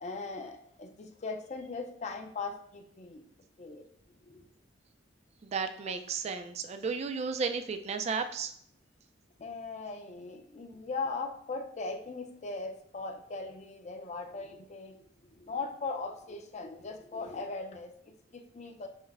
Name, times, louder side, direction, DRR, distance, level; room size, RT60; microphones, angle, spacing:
voice 1, 0.0-3.3 3.6-3.9 4.2-4.5 5.9-6.0 9.4-18.9, left 3 dB, 35° left, 5 dB, 0.5 m, -39 dB
voice 2, 5.4-8.5, right 5 dB, 35° right, 8 dB, 0.3 m, -33 dB
5.4 x 2.1 x 3.4 m, 0.68 s
head